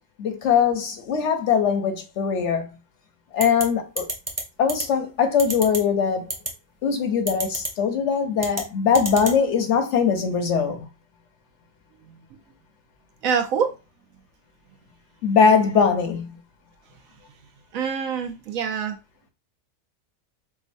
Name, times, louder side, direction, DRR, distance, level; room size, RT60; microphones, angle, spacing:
voice 1, 0.2-2.7 3.3-4.0 4.6-6.3 6.8-10.9 15.2-16.3, left 6 dB, 65° left, 0.8 m, -21 dB
sound 1, 3.4-3.6 4.0-4.4 4.7-4.8 5.4-5.8 6.3-6.5 7.3-7.7 8.4-8.6 8.9-9.3, right 2 dB, 25° right, 0.3 m, -27 dB
voice 2, 13.2-13.7 17.7-19.0, right 6 dB, 75° right, 1.1 m, -25 dB
4.7 x 2.4 x 2.5 m
omnidirectional pair, 1.5 m